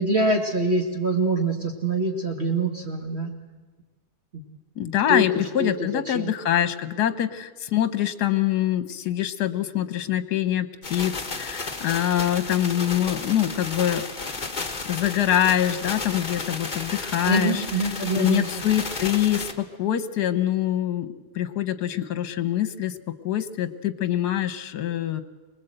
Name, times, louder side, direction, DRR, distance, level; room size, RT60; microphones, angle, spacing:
voice 1, 0.0-3.3 4.3-4.4 5.1-5.2 5.6-5.7 6.1-6.3 17.2-18.5, right 2 dB, 35° right, 2 dB, 2.5 m, -24 dB
voice 2, 4.8-14.0 14.8-17.6 18.1-21.1 21.3-23.0 23.2-25.2, left 11 dB, 70° left, 11 dB, 1.5 m, -24 dB
sound 1, 10.8-19.5, left 3 dB, 30° left, 1.5 m, -33 dB
25.0 x 20.0 x 7.9 m, 1.3 s
omnidirectional pair, 1.8 m